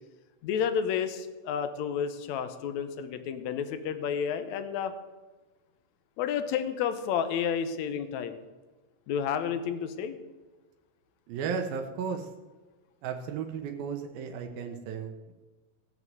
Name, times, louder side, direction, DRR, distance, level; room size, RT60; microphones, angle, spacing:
voice 1, 0.4-4.9 6.2-8.4 9.1-10.2, left 7 dB, 70° left, 10 dB, 1.8 m, -31 dB
voice 2, 11.3-12.3 13.0-15.3, right 6 dB, 85° right, 4 dB, 2.8 m, -34 dB
17.5 x 6.1 x 7.7 m, 1.2 s
omnidirectional pair, 4.1 m